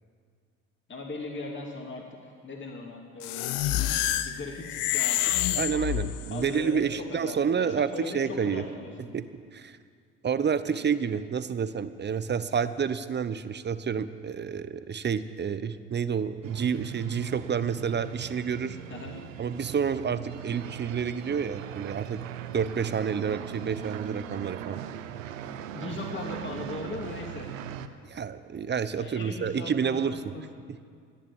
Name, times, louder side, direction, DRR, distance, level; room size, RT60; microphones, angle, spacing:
voice 1, 0.9-3.8 4.2-6.0 6.3-9.2 10.6-10.8 18.9-19.2 25.7-27.5 28.9-30.5, left 2 dB, 30° left, 0 dB, 2.6 m, -39 dB
sound 1, 3.2-6.5, left 13 dB, 60° left, 0.8 m, -28 dB
voice 2, 5.6-8.6 9.1-9.8 10.2-18.8 19.4-22.2 22.5-24.8 28.1-30.3, right 7 dB, 25° right, 14 dB, 0.8 m, -29 dB
sound 2, 16.4-27.9, right 10 dB, 80° right, 0.8 m, -39 dB
14.5 x 10.0 x 8.7 m, 2.1 s
hypercardioid pair, 60°, 39 cm